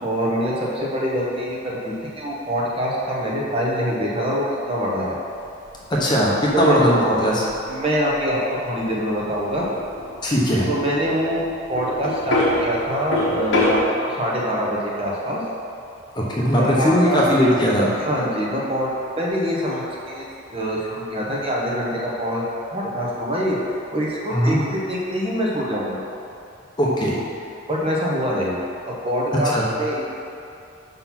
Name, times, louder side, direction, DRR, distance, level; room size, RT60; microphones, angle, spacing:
voice 1, 0.0-5.2 6.5-6.9 7.7-9.7 10.7-11.4 11.7-15.4 16.6-17.2 17.9-18.9 19.2-20.2 20.5-22.4 22.7-26.0 27.7-28.6 28.8-30.0, equal, 30° right, -5 dB, 0.9 m, -24 dB
sound 1, 5.3-13.8, left 2 dB, 75° left, 1.2 m, -27 dB
voice 2, 6.0-7.5 10.2-10.7 16.1-18.0 24.3-24.6 26.8-27.2 29.5-29.7, equal, 20° left, -5 dB, 0.8 m, -19 dB
5.6 x 4.0 x 5.8 m, 2.6 s
head